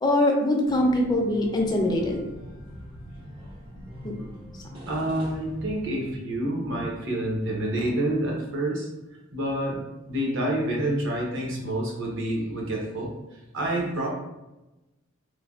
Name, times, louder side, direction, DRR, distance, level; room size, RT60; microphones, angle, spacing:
voice 1, 0.0-2.2 4.0-4.3, left 1 dB, 20° left, 1 dB, 0.4 m, -23 dB
sound 1, 0.6-6.2, equal, 75° right, 1.2 m, -42 dB
voice 2, 4.9-8.9 9.3-9.8 10.1-13.1 13.5-14.1, right 1 dB, 60° right, -2 dB, 0.8 m, -28 dB
3.2 x 2.1 x 2.3 m, 1.0 s
head